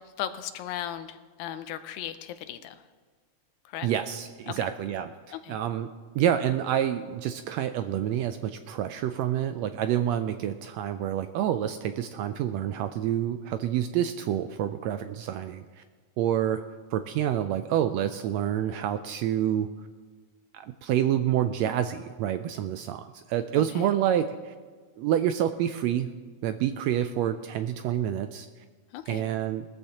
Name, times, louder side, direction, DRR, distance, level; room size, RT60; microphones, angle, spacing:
voice 1, 0.0-2.8 3.7-3.9 4.5-4.6 5.3-5.6 23.6-23.9 28.9-29.2, left 11 dB, 85° left, 10 dB, 2.1 m, -37 dB
voice 2, 3.8-5.9 6.1-15.8 16.2-16.6 16.9-19.7 20.5-24.5 25.0-26.1 26.4-28.5 29.1-29.7, right 10 dB, 80° right, 9 dB, 1.6 m, -28 dB
20.0 x 13.5 x 2.9 m, 1.5 s
omnidirectional pair, 3.3 m